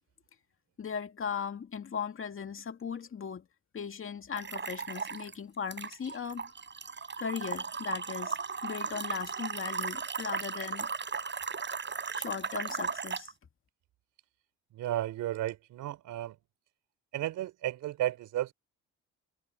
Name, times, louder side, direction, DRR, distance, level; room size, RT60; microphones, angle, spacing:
voice 1, 0.8-3.5 3.7-6.5 7.2-10.9 12.1-13.3, left 6 dB, 45° left, 2.3 m, -38 dB
sound 1, 4.3-5.3 5.7-13.3, right 5 dB, 40° right, 6.4 m, -36 dB
voice 2, 14.7-16.4 17.1-18.5, right 13 dB, 85° right, 3.9 m, -33 dB
cardioid pair, 90°, 30 cm